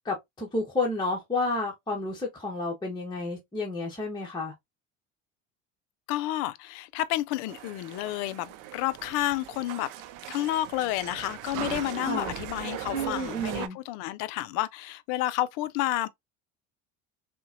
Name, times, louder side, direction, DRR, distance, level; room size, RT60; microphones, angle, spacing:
voice 1, 0.0-4.5 11.9-12.3 12.9-13.8, left 2 dB, 10° left, 1.0 m, -31 dB
voice 2, 6.1-9.9 10.3-16.1, left 15 dB, 65° left, 0.5 m, -30 dB
sound 1, 7.5-13.7, right 13 dB, 55° right, 0.5 m, -39 dB
3.8 x 2.2 x 2.5 m
hypercardioid pair, 70°, 36 cm